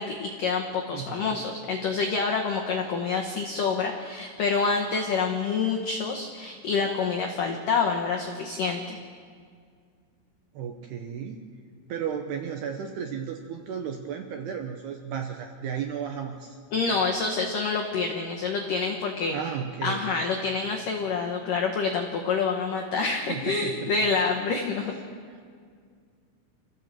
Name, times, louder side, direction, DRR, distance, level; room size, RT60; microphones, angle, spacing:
voice 1, 0.0-9.0 16.7-19.4 19.8-24.9, left 4 dB, 80° left, 1 dB, 1.9 m, -27 dB
voice 2, 0.9-1.5 10.5-11.4 11.9-16.6 19.3-20.1 23.3-23.9 24.8-25.0 25.3-25.4, right 7 dB, 75° right, 4 dB, 2.5 m, -34 dB
27.5 x 15.0 x 7.6 m, 2.1 s
omnidirectional pair, 6.0 m